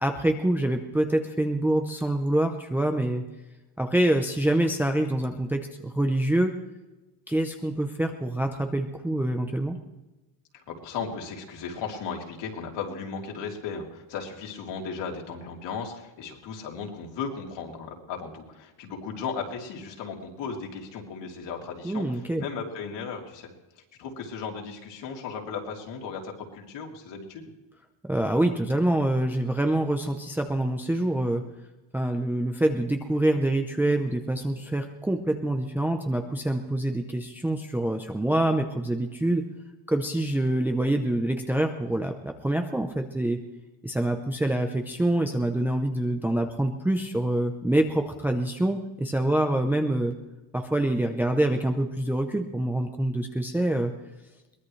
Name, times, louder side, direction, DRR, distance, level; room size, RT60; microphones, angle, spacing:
voice 1, 0.0-3.2 3.8-6.5 7.3-9.8 21.8-22.4 28.0-31.4 31.9-39.4 39.9-43.4 43.8-50.1 50.5-53.9, right 1 dB, 5° right, 4 dB, 0.7 m, -26 dB
voice 2, 10.5-23.5 24.0-27.5, left 5 dB, 55° left, 0 dB, 3.3 m, -36 dB
22.5 x 19.5 x 3.3 m, 1.1 s
cardioid pair, 170°, 50 cm